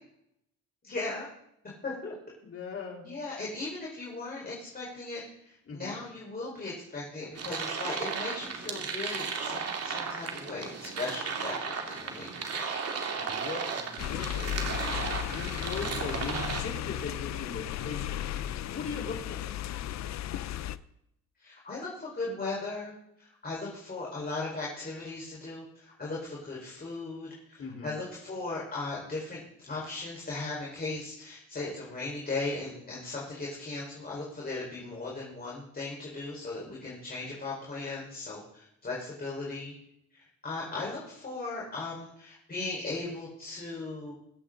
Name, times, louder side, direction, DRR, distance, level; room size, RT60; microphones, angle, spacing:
voice 1, 0.8-1.3 1.8-2.1 3.0-12.7 19.6-19.7 21.4-22.9 23.2-29.4 29.7-39.7 40.4-44.1, left 3 dB, 30° left, -5 dB, 4.7 m, -37 dB
voice 2, 2.4-3.0 5.7-6.0 13.2-14.3 15.3-18.2 18.7-19.5 27.6-27.9, left 5 dB, 45° left, -1 dB, 4.0 m, -39 dB
sound 1, 7.4-16.6, right 5 dB, 55° right, 2.5 m, -35 dB
sound 2, 14.0-20.8, left 12 dB, 65° left, 0.6 m, -35 dB
24.0 x 8.4 x 3.9 m, 0.79 s
cardioid pair, 90°, 30 cm